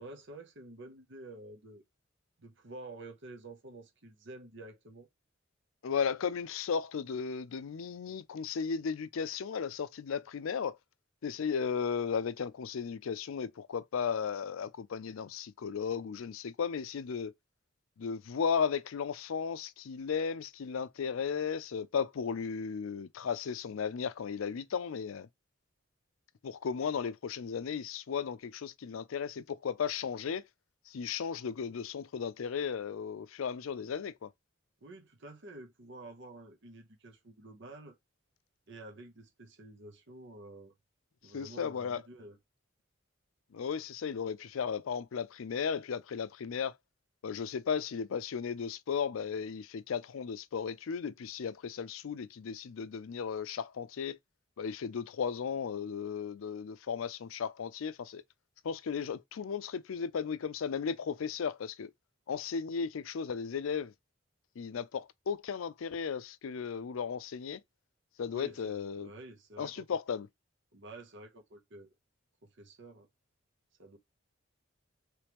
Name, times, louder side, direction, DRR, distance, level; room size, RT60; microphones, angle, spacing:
voice 1, 0.0-1.8 2.4-5.1 34.8-38.0 38.7-40.7 41.2-42.4 68.3-70.0 70.7-71.9 72.4-73.1 73.8-74.0, right 2 dB, 60° right, 0.9 m, -49 dB
voice 2, 5.8-10.8 11.2-17.3 18.0-25.3 26.4-30.4 30.9-34.3 41.3-42.0 43.5-46.7 47.2-54.2 54.6-58.2 58.6-61.9 62.3-63.9 64.6-67.6 68.2-69.1 69.6-70.3, left 6 dB, 80° left, 0.4 m, -35 dB
3.2 x 3.0 x 3.4 m
head